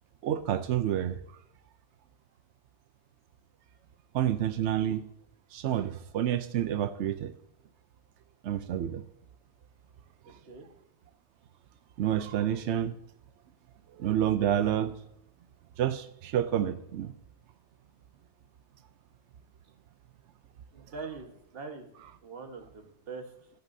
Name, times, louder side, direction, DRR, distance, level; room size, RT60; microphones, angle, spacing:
voice 1, 0.2-1.2 4.1-5.0 5.5-7.3 8.4-9.0 12.0-12.9 14.0-14.9 15.8-17.1, right 10 dB, 80° right, 10 dB, 0.9 m, -28 dB
voice 2, 20.7-21.9 22.2-23.3, right 4 dB, 55° right, 3 dB, 1.6 m, -42 dB
13.5 x 10.5 x 2.7 m, 0.74 s
omnidirectional pair, 1.2 m